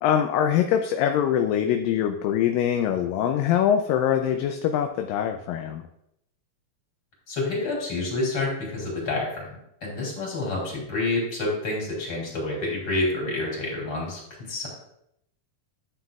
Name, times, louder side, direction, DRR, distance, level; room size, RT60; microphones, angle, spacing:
voice 1, 0.0-5.8, left 9 dB, 80° left, 5 dB, 2.2 m, -23 dB
voice 2, 7.3-9.5 9.8-14.2 14.5-14.7, left 2 dB, 35° left, -3 dB, 3.5 m, -28 dB
11.0 x 7.6 x 2.4 m, 0.78 s
omnidirectional pair, 4.2 m